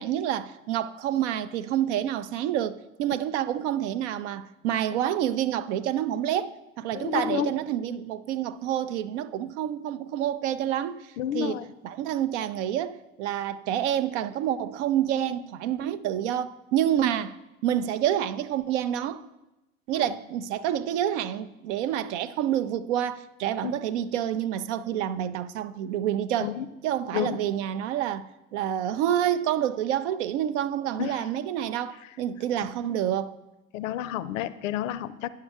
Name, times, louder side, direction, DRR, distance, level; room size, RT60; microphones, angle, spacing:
voice 1, 0.0-17.4 17.6-19.3 19.9-26.5 26.8-33.3, right 11 dB, 60° right, 0.5 m, -28 dB
voice 2, 6.9-7.6 11.2-11.7 20.0-20.1 23.6-23.8 26.4-26.7 27.1-27.4 31.0-31.2 33.7-35.3, left 11 dB, 70° left, 0.5 m, -30 dB
10.5 x 5.5 x 3.5 m
figure-of-eight pair, 65°, 41 cm